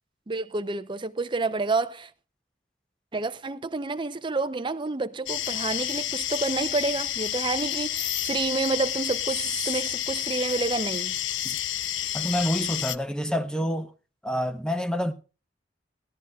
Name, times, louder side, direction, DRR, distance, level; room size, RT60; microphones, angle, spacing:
voice 1, 0.3-2.1 3.1-11.2, right 3 dB, 25° right, 0.6 m, -29 dB
sound 1, 5.3-13.0, left 11 dB, 75° left, 0.5 m, -30 dB
voice 2, 12.1-13.9 14.2-15.1, equal, 5° left, 0.8 m, -27 dB
18.5 x 13.5 x 2.3 m
head